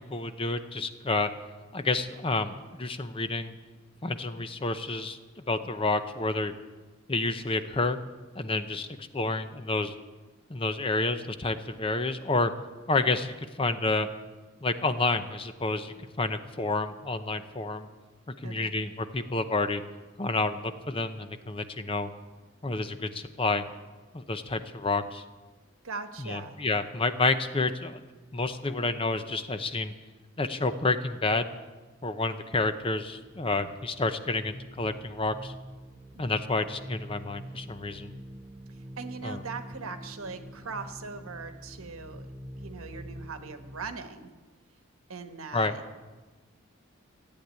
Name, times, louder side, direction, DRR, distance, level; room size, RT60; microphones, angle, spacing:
voice 1, 0.1-1.3 1.7-3.5 4.0-5.2 5.5-6.5 7.1-8.0 8.4-9.9 10.5-12.5 12.9-14.1 14.6-17.9 18.4-19.8 20.2-22.1 22.6-23.6 24.1-25.2 26.2-28.0 28.3-29.9 30.4-31.4 32.0-35.5 36.2-38.1 39.2-39.4 45.5-45.7, left 3 dB, 25° left, 9 dB, 0.7 m, -29 dB
voice 2, 18.4-18.8 25.8-26.6 36.1-36.3 39.0-42.3 42.6-44.3 45.1-45.8, right 4 dB, 85° right, 8 dB, 1.3 m, -40 dB
sound 1, 33.2-44.0, equal, 15° right, 0.7 m, -45 dB
14.5 x 8.6 x 9.4 m, 1.3 s
head